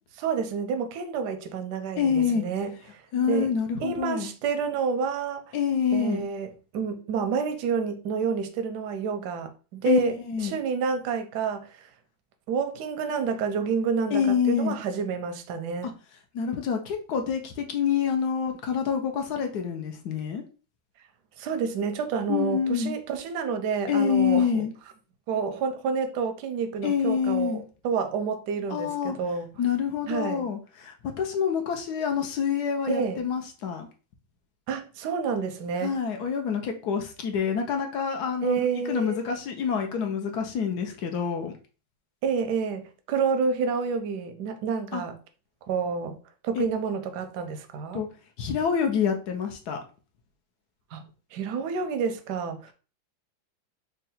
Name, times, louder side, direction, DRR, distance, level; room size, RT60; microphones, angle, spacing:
voice 1, 0.2-3.0 3.3-3.5 3.8-5.5 5.9-10.1 10.4-11.9 12.5-15.9 21.4-24.5 25.3-29.5 30.1-30.4 32.9-33.2 34.7-36.0 38.4-39.2 42.2-45.2 45.7-46.2 46.4-48.0 50.9-51.1 51.3-52.7, right 5 dB, 75° right, 1.0 m, -29 dB
voice 2, 2.0-2.4 3.1-4.3 5.5-6.3 9.8-10.5 14.1-14.8 15.8-15.9 16.3-20.4 22.3-22.9 23.9-24.7 26.8-27.6 28.7-29.2 29.6-33.9 35.8-41.5 44.9-45.0 46.5-46.7 47.9-48.1 48.4-49.8, left 7 dB, 70° left, 1.0 m, -27 dB
3.7 x 2.2 x 4.0 m
omnidirectional pair, 2.2 m